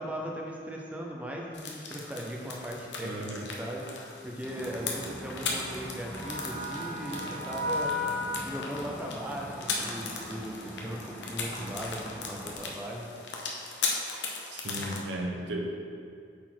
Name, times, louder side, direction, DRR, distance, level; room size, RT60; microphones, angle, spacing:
voice 1, 0.0-13.1 14.8-14.9, equal, 10° right, -2 dB, 0.6 m, -38 dB
sound 1, 1.5-15.0, left 4 dB, 70° left, 0.9 m, -38 dB
voice 2, 3.0-3.5 14.5-15.7, right 1 dB, 70° right, 1 dB, 0.9 m, -35 dB
sound 2, 4.4-12.5, left 1 dB, 10° left, 1.7 m, -37 dB
8.3 x 4.2 x 4.5 m, 2.3 s
head